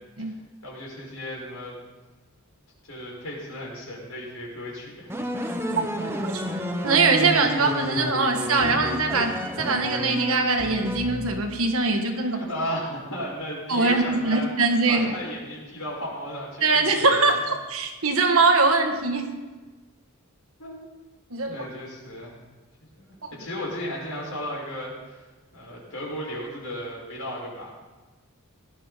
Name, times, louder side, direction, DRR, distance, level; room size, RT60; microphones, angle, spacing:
voice 1, 0.6-1.8 2.8-5.2 12.2-14.5 14.9-17.4 20.6-20.8 21.5-22.4 23.0-25.2 25.5-27.7, equal, 70° left, -3 dB, 5.8 m, -35 dB
sound 1, 5.1-11.7, equal, 10° right, 1.0 m, -30 dB
voice 2, 6.8-12.4 13.7-15.1 16.6-19.3 21.3-21.7 23.2-23.3, right 3 dB, 75° right, 4 dB, 1.7 m, -22 dB
18.5 x 11.5 x 4.2 m, 1.2 s
head